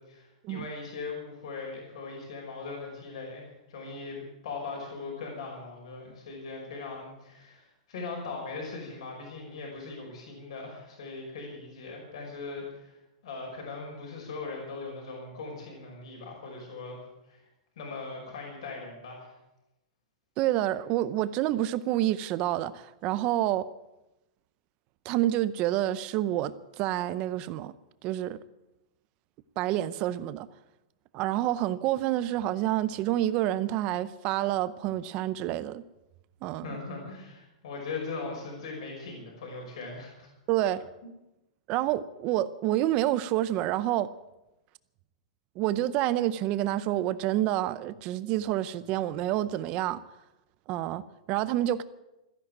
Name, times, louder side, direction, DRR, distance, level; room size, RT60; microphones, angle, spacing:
voice 1, 0.0-12.9 13.2-17.0 17.3-17.4 17.8-19.3 36.6-40.3 41.0-41.1, left 3 dB, 60° left, -1 dB, 5.6 m, -40 dB
voice 2, 20.4-23.7 25.0-27.7 28.0-28.4 29.6-30.5 31.1-35.8 36.4-36.7 40.5-40.8 41.7-44.1 45.6-50.0 50.7-51.8, right 13 dB, 25° right, 16 dB, 0.6 m, -28 dB
14.5 x 11.0 x 9.0 m, 0.94 s
supercardioid pair, 175°, 4 cm